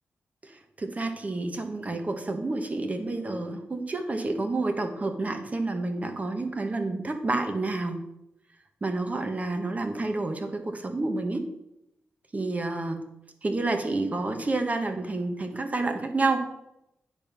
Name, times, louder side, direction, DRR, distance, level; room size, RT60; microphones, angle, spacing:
voice 1, 0.8-8.0 8.8-11.4 12.3-13.1 13.4-16.4, right 2 dB, 35° right, 6 dB, 1.3 m, -29 dB
9.9 x 3.6 x 6.0 m, 0.84 s
cardioid pair, 60°, 4 cm